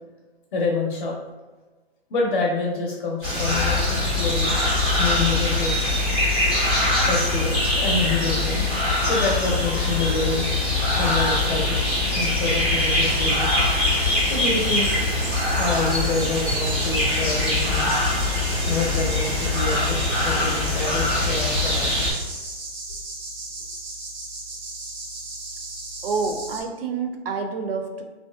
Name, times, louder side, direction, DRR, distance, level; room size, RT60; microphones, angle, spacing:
voice 1, 0.5-1.2 2.1-4.6 5.0-5.7 7.1-8.7 9.0-10.4 10.9-11.9 12.1-13.6 14.2-15.0 15.6-17.9 18.7-22.2, left 3 dB, 50° left, -2 dB, 0.6 m, -27 dB
sound 1, 3.2-22.1, left 2 dB, 10° right, 0.3 m, -22 dB
sound 2, 13.1-26.6, right 2 dB, 85° right, 1.0 m, -36 dB
voice 2, 26.0-28.0, right 4 dB, 65° right, 5 dB, 0.5 m, -28 dB
3.0 x 2.7 x 2.2 m, 1.3 s
hypercardioid pair, 155°, 32 cm